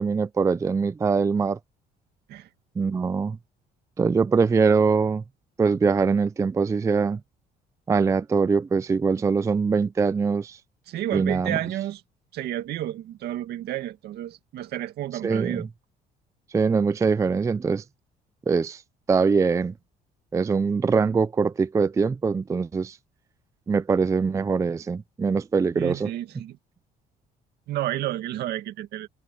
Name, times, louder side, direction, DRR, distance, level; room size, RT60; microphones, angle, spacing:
voice 1, 0.0-1.6 2.8-3.4 4.0-5.2 5.6-7.2 7.9-10.6 11.1-11.6 15.2-15.7 16.5-17.8 18.5-18.8 19.1-19.7 20.3-23.0 23.7-26.1, right 5 dB, 20° right, 0.4 m, -23 dB
voice 2, 10.9-12.0 12.3-15.7 25.7-26.6 27.7-29.1, right 13 dB, 75° right, 2.0 m, -31 dB
open air
cardioid pair, 110°, 17 cm